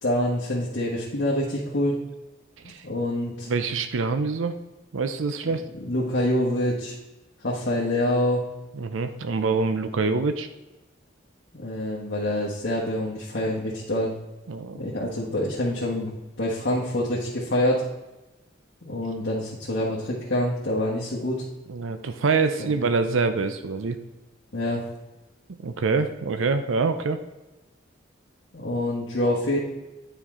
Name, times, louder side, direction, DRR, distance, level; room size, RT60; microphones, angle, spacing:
voice 1, 0.0-2.0 2.6-3.5 5.5-6.9 7.4-8.4 11.5-14.1 14.7-17.8 18.8-21.4 22.6-22.8 24.5-24.8 28.5-29.6, left 1 dB, 60° left, -6 dB, 1.3 m, -26 dB
voice 2, 3.5-4.5 4.9-5.6 8.7-10.5 14.5-14.9 21.7-24.0 25.5-27.2, right 4 dB, 85° right, 9 dB, 0.6 m, -25 dB
9.7 x 4.5 x 3.7 m, 1.1 s
head